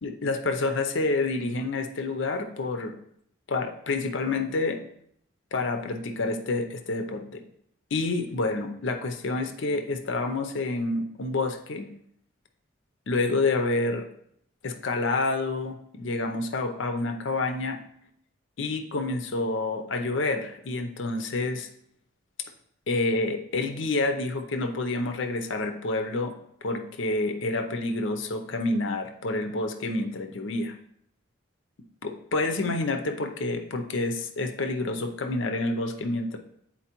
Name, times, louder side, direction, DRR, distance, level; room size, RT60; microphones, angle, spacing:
voice 1, 0.0-3.0 3.5-4.8 5.5-7.4 7.9-11.9 13.1-14.1 14.6-17.8 18.6-21.7 22.9-26.3 26.6-30.7 32.0-36.4, left 2 dB, 70° left, 6 dB, 0.6 m, -28 dB
9.1 x 4.2 x 2.9 m, 0.71 s
head